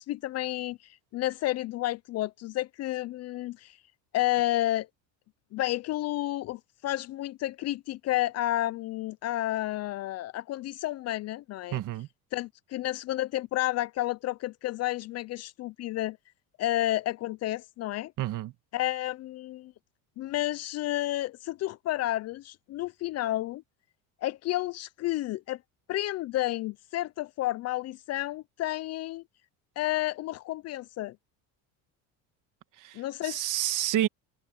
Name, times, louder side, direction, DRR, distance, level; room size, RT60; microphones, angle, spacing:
voice 1, 0.0-3.8 4.1-4.9 5.5-11.8 12.3-16.2 16.6-18.1 18.7-19.7 20.2-23.6 24.2-25.6 25.9-29.2 29.8-31.2 32.9-33.4, left 15 dB, 45° left, 0.4 m, -31 dB
voice 2, 11.7-12.1 18.2-18.5 32.8-34.1, right 13 dB, 55° right, 1.9 m, -29 dB
cardioid pair, 135°, 38 cm